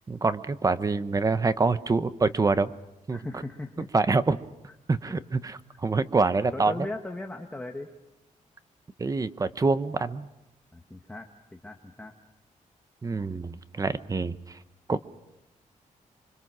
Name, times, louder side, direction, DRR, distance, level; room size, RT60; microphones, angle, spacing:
voice 1, 0.1-2.7 3.1-3.2 3.9-4.4 4.9-6.7 9.0-10.3 13.0-14.6 14.9-15.0, right 3 dB, 25° right, 13 dB, 0.9 m, -26 dB
voice 2, 3.1-3.9 5.1-5.2 6.5-7.9 10.7-12.1, left 2 dB, 10° left, 3 dB, 1.4 m, -38 dB
26.5 x 24.5 x 6.2 m, 0.92 s
wide cardioid pair, 130°, 14 cm